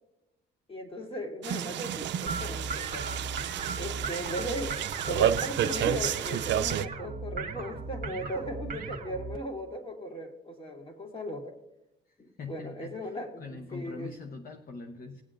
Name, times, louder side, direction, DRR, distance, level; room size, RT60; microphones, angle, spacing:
voice 1, 0.7-3.1 3.8-11.5 12.2-14.1, equal, 30° left, 2 dB, 2.4 m, -37 dB
sound 1, 1.4-6.9, right 10 dB, 65° right, 0.5 m, -31 dB
sound 2, 2.3-9.4, right 4 dB, 45° right, 1.2 m, -37 dB
voice 2, 12.1-13.1 13.4-15.2, left 4 dB, 45° left, 5 dB, 0.9 m, -43 dB
20.5 x 8.1 x 2.6 m, 0.87 s
cardioid pair, 90°, 20 cm